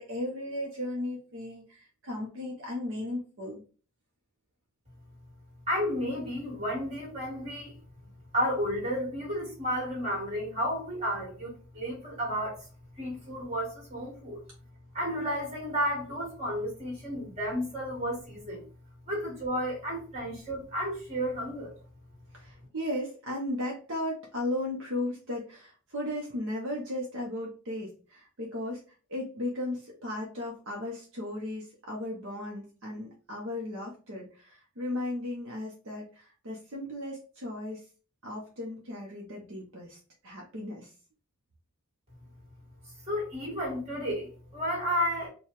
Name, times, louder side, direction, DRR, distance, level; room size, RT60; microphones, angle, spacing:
voice 1, 0.0-3.6 22.3-28.8 29.1-37.9 38.2-40.9, left 1 dB, 60° right, 0.8 m, -36 dB
voice 2, 5.7-7.8 8.3-12.7 13.0-14.4 14.9-18.6 19.1-21.8 43.1-45.3, equal, 30° right, 1.8 m, -32 dB
4.6 x 2.3 x 3.1 m
head